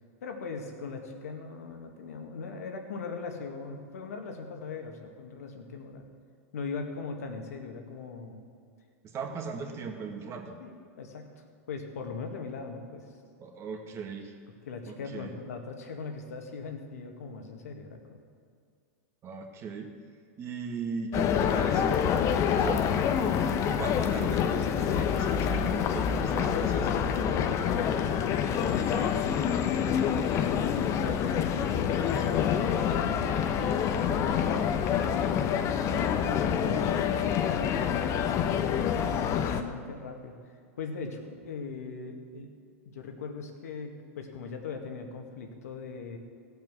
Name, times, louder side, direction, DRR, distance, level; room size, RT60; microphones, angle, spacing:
voice 1, 0.2-6.1 6.5-8.4 10.6-13.1 14.7-18.2 26.2-29.2 30.2-33.7 35.8-40.3 40.8-42.5 42.9-46.2, left 4 dB, 85° left, 4 dB, 1.9 m, -40 dB
voice 2, 9.0-10.6 13.4-14.3 14.9-15.3 19.2-19.9 20.4-22.0 22.5-22.8 23.8-27.0 34.5-35.4, right 5 dB, 35° right, 3 dB, 1.8 m, -38 dB
sound 1, 21.1-39.6, left 8 dB, 40° left, 0.9 m, -27 dB
16.5 x 7.4 x 6.3 m, 2.2 s
hypercardioid pair, 115°, 8 cm